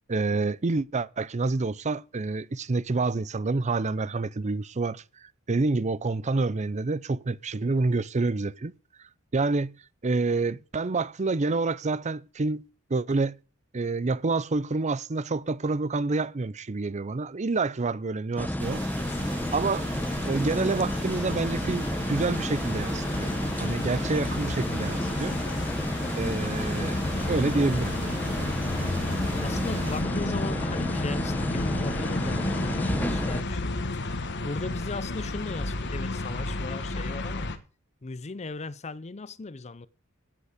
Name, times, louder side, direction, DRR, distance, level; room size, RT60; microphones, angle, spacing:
voice 1, 0.1-5.0 5.5-8.7 9.3-9.7 10.0-12.6 12.9-13.4 13.7-18.8 19.5-19.8 20.3-23.3 23.6-25.4 26.1-27.9, right 3 dB, 35° right, 0.6 m, -28 dB
sound 1, 18.4-33.4, equal, 10° left, 0.9 m, -31 dB
sound 2, 18.6-30.0, right 4 dB, 60° right, 4.5 m, -42 dB
sound 3, 19.1-37.6, left 2 dB, 55° left, 1.4 m, -33 dB
voice 2, 29.4-34.2 34.4-37.5 38.0-39.9, left 3 dB, 30° left, 0.6 m, -37 dB
16.0 x 8.1 x 5.1 m
head